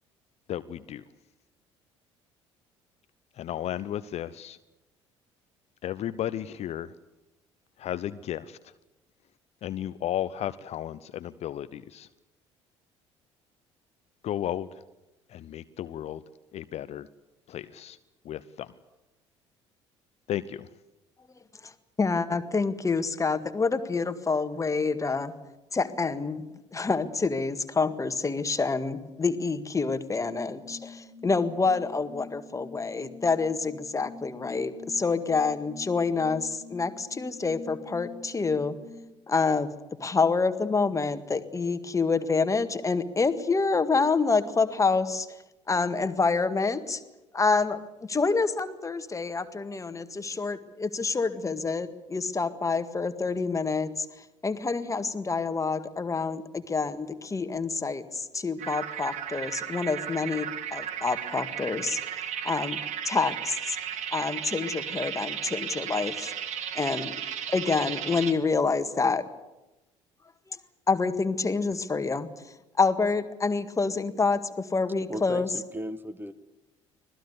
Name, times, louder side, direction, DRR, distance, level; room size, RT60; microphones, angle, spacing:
voice 1, 0.5-1.0 3.4-4.6 5.8-6.9 7.8-8.7 9.6-12.1 14.2-14.8 15.3-16.2 16.5-17.1 17.5-18.0 18.2-18.7 20.3-20.7, left 11 dB, 45° left, 15 dB, 0.7 m, -34 dB
voice 2, 22.0-25.3 25.7-26.4 26.7-38.8 39.3-39.7 40.0-45.3 45.7-47.0 47.3-47.8 48.1-54.1 54.4-62.0 62.4-62.8 63.1-63.8 64.1-66.3 66.7-67.1 67.5-69.2 70.9-72.3 72.8-75.5, left 4 dB, 20° left, 10 dB, 1.9 m, -27 dB
sound 1, 30.2-39.1, left 4 dB, 85° left, 2.2 m, -46 dB
sound 2, 58.6-68.3, right 9 dB, 50° right, 2.3 m, -35 dB
voice 3, 75.1-76.3, right 1 dB, 15° right, 14 dB, 1.6 m, -36 dB
25.5 x 18.5 x 8.2 m, 1.0 s
figure-of-eight pair, 55°, 15 cm